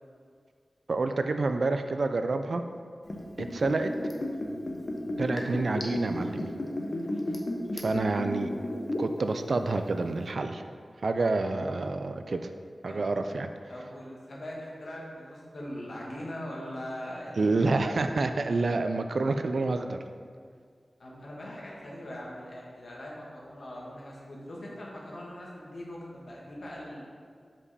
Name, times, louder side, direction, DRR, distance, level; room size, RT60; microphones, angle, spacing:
voice 1, 0.9-2.6 3.4-3.9 5.2-6.5 7.7-8.5 9.0-10.6 11.0-12.5 12.8-13.5 17.4-20.0, right 3 dB, 75° right, 7 dB, 0.4 m, -28 dB
Liquid, 3.1-9.2 9.5-9.6, left 1 dB, 50° left, 0.8 m, -32 dB
voice 2, 13.7-17.9 21.0-27.0, equal, 70° left, -4 dB, 1.4 m, -41 dB
5.4 x 5.0 x 4.1 m, 2.1 s
wide cardioid pair, 75°, 0 cm